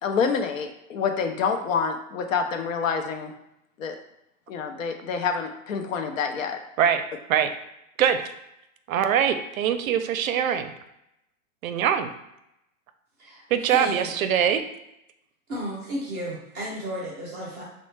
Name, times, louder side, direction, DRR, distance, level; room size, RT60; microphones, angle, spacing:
voice 1, 0.0-3.3 3.8-4.0 4.5-6.6, left 6 dB, 70° left, 6 dB, 0.6 m, -27 dB
voice 2, 8.9-10.7 11.6-12.1 13.5-14.6, right 8 dB, 75° right, 9 dB, 0.5 m, -22 dB
voice 3, 13.2-14.1 15.5-17.6, equal, 5° right, -16 dB, 0.4 m, -33 dB
4.1 x 2.1 x 3.1 m, 0.83 s
hypercardioid pair, 175°, 42 cm